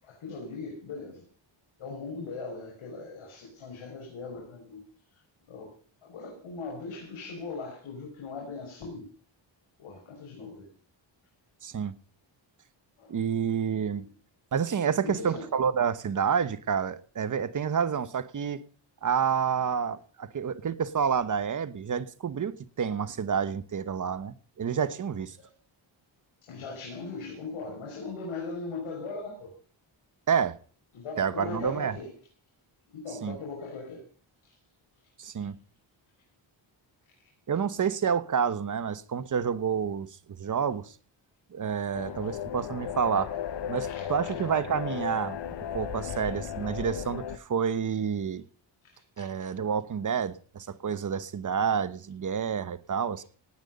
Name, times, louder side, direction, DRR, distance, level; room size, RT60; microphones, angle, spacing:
voice 1, 0.0-1.3 1.8-4.8 5.1-5.2 5.5-5.7 6.0-9.1 9.8-10.7 13.0-13.2 13.9-14.1 15.0-15.5 25.4-25.5 26.4-29.5 30.9-32.1 32.9-34.0 34.4-34.6 43.8-44.5 46.1-46.2 48.8-49.5, left 3 dB, 85° left, 0 dB, 5.8 m, -40 dB
voice 2, 11.6-11.9 13.1-14.0 14.5-18.6 19.0-25.4 30.3-30.6 31.2-32.0 33.2-33.4 35.2-35.6 37.5-40.1 40.4-40.9 41.5-43.3 43.7-45.4 45.7-48.4 49.2-53.2, right 7 dB, 40° right, 15 dB, 1.1 m, -29 dB
sound 1, 41.9-47.4, left 9 dB, 60° left, 0.9 m, -35 dB
18.0 x 10.5 x 5.4 m, 0.42 s
wide cardioid pair, 170°, 47 cm